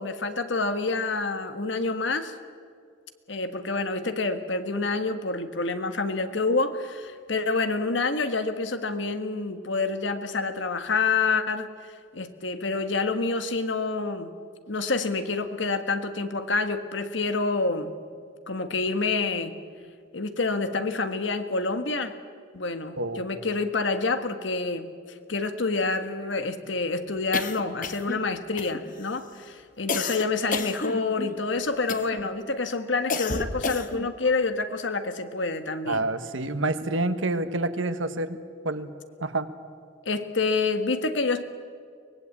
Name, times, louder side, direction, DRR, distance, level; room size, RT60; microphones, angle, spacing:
voice 1, 0.0-2.3 3.3-11.7 12.1-14.3 14.7-18.0 18.5-19.6 20.1-22.1 22.5-24.9 25.3-36.0 40.0-41.4, left 3 dB, 65° left, 9 dB, 1.5 m, -27 dB
voice 2, 23.0-23.3 35.9-38.4 38.6-38.9 39.2-39.5, right 2 dB, 80° right, 10 dB, 1.5 m, -28 dB
sound 1, 27.3-28.2 28.6-29.1 29.9-31.4 31.9-32.3 33.1-34.1, left 4 dB, 45° left, 1.1 m, -31 dB
24.0 x 19.0 x 8.5 m, 2.3 s
head